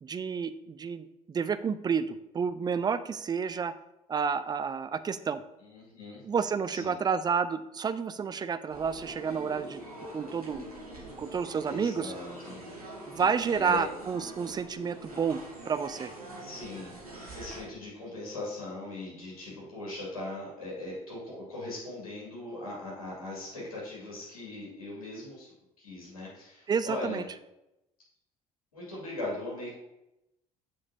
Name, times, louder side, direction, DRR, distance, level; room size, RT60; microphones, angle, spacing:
voice 1, 0.0-3.7 4.1-5.4 6.2-9.8 10.1-10.7 11.0-12.1 13.1-15.4 15.7-16.1 26.7-27.2, right 6 dB, 20° right, 12 dB, 0.4 m, -30 dB
voice 2, 5.6-6.2 6.7-7.0 11.7-12.6 13.5-13.9 16.4-25.5 25.8-27.2 28.7-29.8, left 2 dB, 80° left, -6 dB, 2.2 m, -39 dB
sound 1, 8.7-17.7, right 1 dB, 85° right, 1.0 m, -44 dB
7.1 x 5.2 x 2.8 m, 0.89 s
figure-of-eight pair, 50°, 18 cm